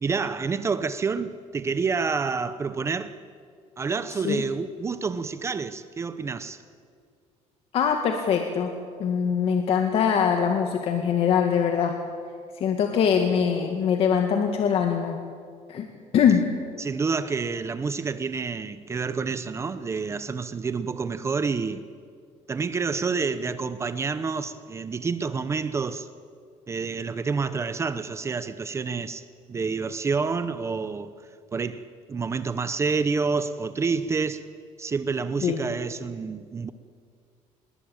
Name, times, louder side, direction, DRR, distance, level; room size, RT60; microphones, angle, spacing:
voice 1, 0.0-3.2 3.8-6.6 16.8-21.9 22.5-26.1 26.7-31.1 31.5-34.5 34.8-36.7, right 5 dB, 20° right, 0.8 m, -28 dB
voice 2, 4.1-4.4 7.7-8.7 9.0-12.0 12.6-15.2 15.7-15.9 16.1-16.5 35.4-35.7, left 7 dB, 50° left, 2.0 m, -23 dB
27.5 x 21.0 x 8.9 m
cardioid pair, 165°, 13 cm